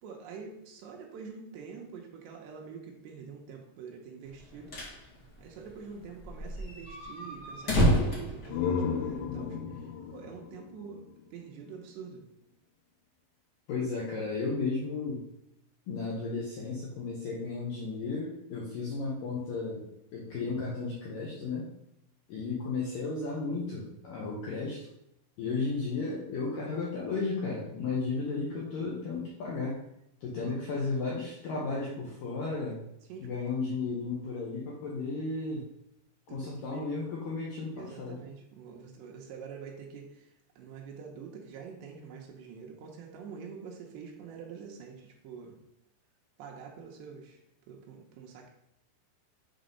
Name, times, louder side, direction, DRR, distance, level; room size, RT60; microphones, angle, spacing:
voice 1, 0.0-4.7 5.4-9.6 10.1-11.0 11.3-12.2 30.4-30.6 33.1-33.4 36.3-36.9 37.8-40.1 40.6-45.6 46.4-47.4 47.7-48.5, right 6 dB, 75° right, 1 dB, 3.0 m, -46 dB
sound 1, 4.3-5.0 5.3-5.4 5.6-5.7 6.2-9.2, equal, 45° left, 1.3 m, -29 dB
sound 2, 8.4-11.9, left 6 dB, 90° left, 3.6 m, -35 dB
voice 2, 13.7-15.2 15.9-19.9 20.1-21.7 22.3-24.9 25.4-29.8 30.2-32.8 33.2-35.7 36.3-38.2, left 4 dB, 75° left, -4 dB, 2.1 m, -34 dB
7.9 x 4.0 x 5.3 m, 0.81 s
omnidirectional pair, 5.4 m